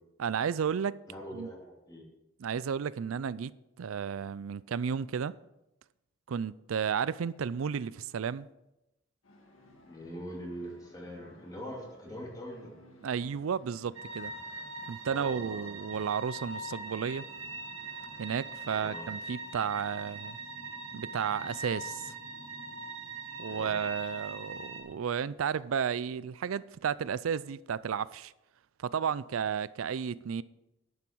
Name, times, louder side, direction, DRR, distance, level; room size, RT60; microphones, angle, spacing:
voice 1, 0.2-1.0 1.3-1.5 2.4-3.5 3.8-5.3 6.3-8.5 13.0-14.3 14.9-17.3 18.2-20.4 20.9-22.1 23.4-28.3 28.8-30.4, right 7 dB, 85° right, 0.4 m, -33 dB
voice 2, 1.1-2.1 9.9-12.7 15.0-15.7 18.7-19.1 23.4-23.7, equal, 20° left, 2.6 m, -43 dB
sound 1, 9.2-19.1, left 1 dB, 90° left, 1.8 m, -58 dB
sound 2, 14.0-24.8, right 2 dB, 70° right, 2.2 m, -42 dB
11.0 x 9.8 x 4.6 m
head